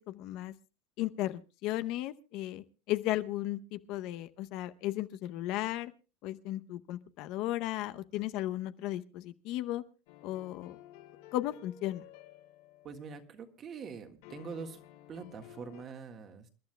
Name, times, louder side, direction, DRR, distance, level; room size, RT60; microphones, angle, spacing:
voice 1, 0.1-0.5 1.0-5.9 6.2-9.8 10.2-10.8 11.3-12.0, left 15 dB, 50° left, 0.7 m, -35 dB
sound 1, 10.1-13.4 14.2-15.8, left 12 dB, 75° left, 3.4 m, -54 dB
voice 2, 12.8-14.8 15.1-16.5, right 5 dB, 30° right, 1.6 m, -44 dB
28.5 x 11.5 x 2.3 m
supercardioid pair, 145°, 0 cm